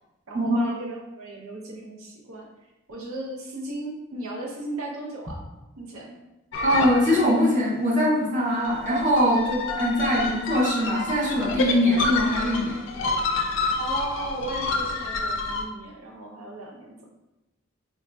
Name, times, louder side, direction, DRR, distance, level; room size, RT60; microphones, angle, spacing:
voice 1, 0.3-2.5 2.9-5.4 5.8-6.2 9.3-9.7 10.0-10.5 13.8-17.1, right 2 dB, 80° right, -1 dB, 0.6 m, -36 dB
sound 1, 6.5-7.5 8.5-15.6, left 3 dB, 55° left, 0.4 m, -28 dB
voice 2, 6.6-9.4 9.8-12.9, equal, 35° right, -5 dB, 0.7 m, -22 dB
4.1 x 2.6 x 2.2 m, 1.0 s
head